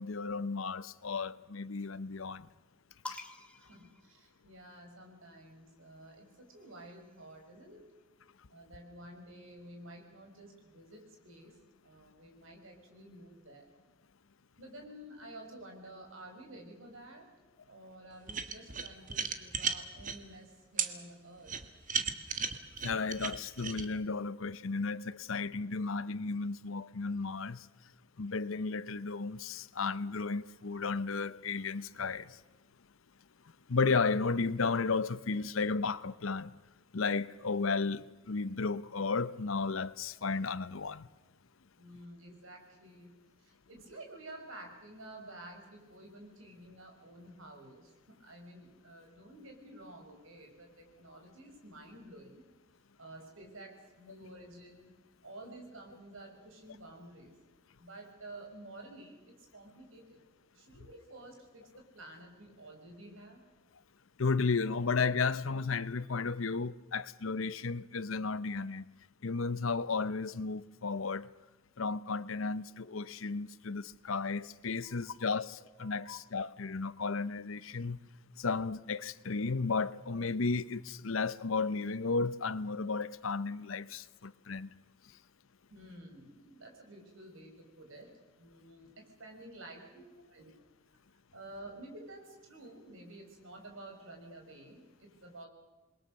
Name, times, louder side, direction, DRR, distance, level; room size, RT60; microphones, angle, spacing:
voice 1, 0.0-2.5 3.1-3.2 22.8-27.7 28.2-32.3 33.7-36.5 36.9-41.1 64.2-68.8 69.2-71.3 71.8-78.0 78.4-84.7, left 4 dB, 70° left, 0.8 m, -33 dB
sound 1, 3.0-4.8 6.0-7.6, left 2 dB, 5° left, 1.8 m, -50 dB
voice 2, 3.6-7.8 8.5-11.6 11.8-13.7 14.6-17.3 17.6-21.5 41.8-43.1 43.4-52.5 53.0-54.9 55.2-57.3 57.8-60.2 60.5-63.4 74.8-75.5 75.8-76.1 85.7-88.1 88.4-90.5 91.3-95.5, right 1 dB, 70° right, 5.6 m, -51 dB
sound 2, 18.3-20.2 20.8-20.9 21.5-23.9, right 6 dB, 40° right, 1.6 m, -34 dB
28.0 x 22.0 x 6.6 m
head